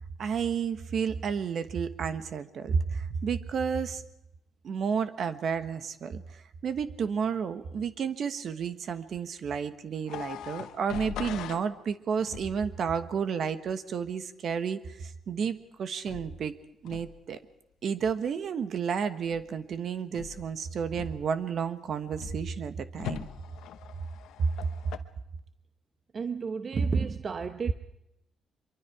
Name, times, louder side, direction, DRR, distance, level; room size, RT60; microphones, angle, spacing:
voice 1, 0.2-4.0 4.6-6.2 6.6-16.5 16.8-17.4 17.8-23.3 24.4-24.5, right 6 dB, 60° right, 1.3 m, -31 dB
sound 1, 10.0-11.7 12.3-12.6 16.1-16.4 16.8-17.2 19.3-19.7 20.1-20.5 20.9-21.4 22.2-22.5 22.9-25.0, left 10 dB, 85° left, 1.0 m, -41 dB
voice 2, 26.1-27.7, right 5 dB, 45° right, 0.9 m, -30 dB
24.5 x 23.5 x 4.9 m
cardioid pair, 90°, 0 cm